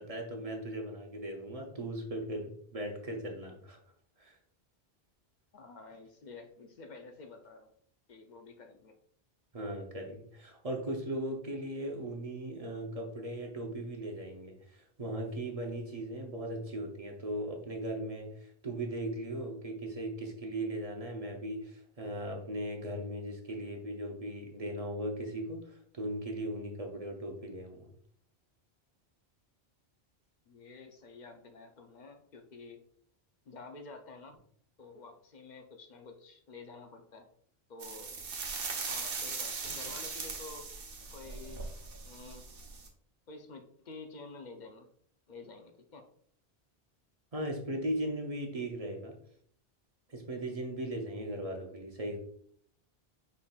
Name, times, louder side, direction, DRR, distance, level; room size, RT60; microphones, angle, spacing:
voice 1, 0.0-3.8 4.2-4.3 9.5-27.9 47.3-49.2 50.1-52.2, right 1 dB, 40° right, 1 dB, 0.7 m, -38 dB
voice 2, 5.5-7.7 8.1-9.0 30.5-32.8 33.5-34.4 34.8-37.3 37.7-38.1 38.9-40.7 41.1-42.4 43.3-44.9 45.3-46.1, left 3 dB, 50° left, 6 dB, 0.6 m, -50 dB
sound 1, 37.8-42.9, right 4 dB, 60° right, 1.0 m, -39 dB
5.2 x 4.0 x 2.3 m, 0.62 s
omnidirectional pair, 1.1 m